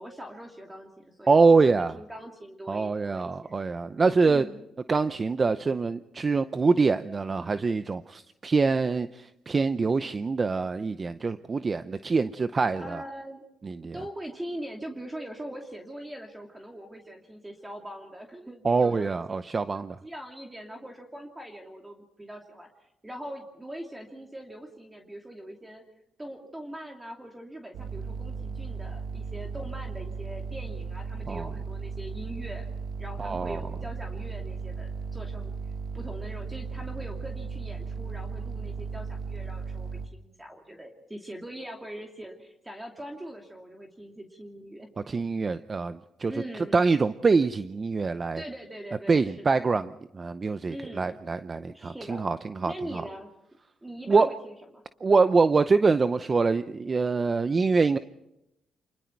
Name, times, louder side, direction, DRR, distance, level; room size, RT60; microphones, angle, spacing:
voice 1, 0.0-3.5 4.2-4.6 12.8-13.5 13.9-19.2 19.7-22.7 23.0-25.8 26.2-32.6 33.0-35.5 35.9-44.9 46.2-46.8 48.4-49.6 50.7-51.2 51.6-52.2 52.7-53.3 53.8-54.8, right 1 dB, 15° right, 1 dB, 2.7 m, -42 dB
voice 2, 1.3-2.0 2.7-4.5 4.9-13.0 13.6-13.9 18.6-20.0 31.3-31.5 33.2-33.6 45.1-46.3 46.7-48.4 49.1-53.0 54.1-54.3 55.0-58.0, right 4 dB, 35° right, 12 dB, 0.7 m, -24 dB
sound 1, 27.7-40.1, right 4 dB, 80° right, 1.6 m, -36 dB
27.5 x 20.5 x 4.6 m, 0.86 s
cardioid pair, 90°, 0 cm